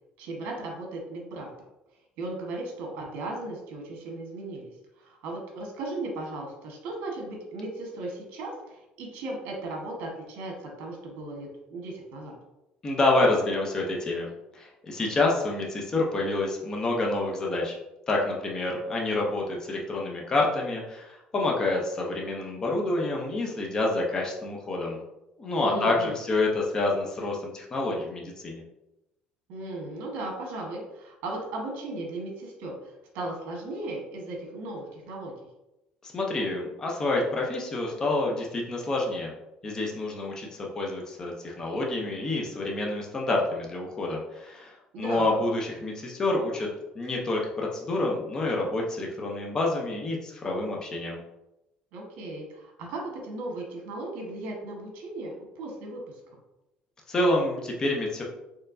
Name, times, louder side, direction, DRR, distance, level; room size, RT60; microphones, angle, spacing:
voice 1, 0.2-1.5 2.2-12.3 25.6-26.2 29.5-35.3 44.9-45.4 51.9-56.1, right 2 dB, 75° right, 0 dB, 1.2 m, -36 dB
voice 2, 12.8-14.3 14.5-17.7 18.1-25.0 25.4-28.6 36.0-39.3 39.6-46.7 47.0-51.2 57.1-58.2, left 2 dB, 20° left, -1 dB, 0.6 m, -28 dB
4.4 x 3.0 x 2.6 m, 0.93 s
cardioid pair, 170°, 3 cm